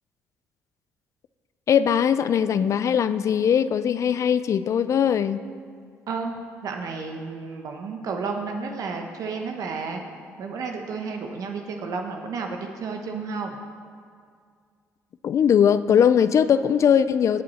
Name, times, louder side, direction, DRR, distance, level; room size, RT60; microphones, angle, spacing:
voice 1, 1.7-5.4 15.2-17.4, left 8 dB, 55° left, 14 dB, 0.5 m, -20 dB
voice 2, 6.6-10.0 10.4-13.6, right 4 dB, 65° right, 3 dB, 1.0 m, -32 dB
18.5 x 6.7 x 4.2 m, 2.1 s
supercardioid pair, 65°, 6 cm